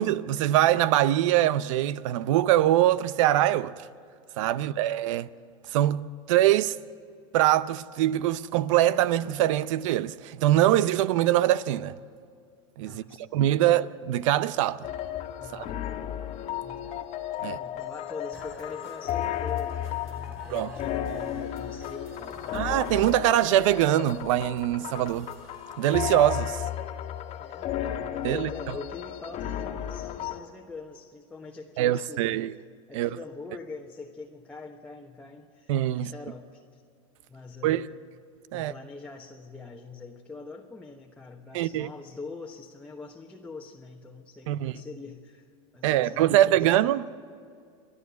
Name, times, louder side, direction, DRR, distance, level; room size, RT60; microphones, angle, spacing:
voice 1, 0.0-3.7 4.4-5.3 5.7-6.7 7.3-12.0 12.8-14.9 15.5-15.7 17.4-17.6 20.5-20.8 22.5-25.3 25.8-26.6 28.2-28.5 31.8-32.5 32.9-33.2 35.7-36.1 37.6-37.8 38.5-38.7 41.5-41.9 44.5-44.7 45.8-47.1, right 13 dB, 75° right, 0.7 m, -23 dB
voice 2, 12.8-13.7 15.4-15.8 16.6-17.0 17.4-22.7 27.4-32.5 32.9-36.8 37.3-38.0 38.5-45.4 45.7-46.8, left 3 dB, 10° left, 1.3 m, -44 dB
sound 1, 14.8-30.4, left 11 dB, 45° left, 1.6 m, -34 dB
sound 2, 18.3-26.3, right 2 dB, 15° right, 3.6 m, -52 dB
28.5 x 11.0 x 8.3 m
supercardioid pair, 120°, 16 cm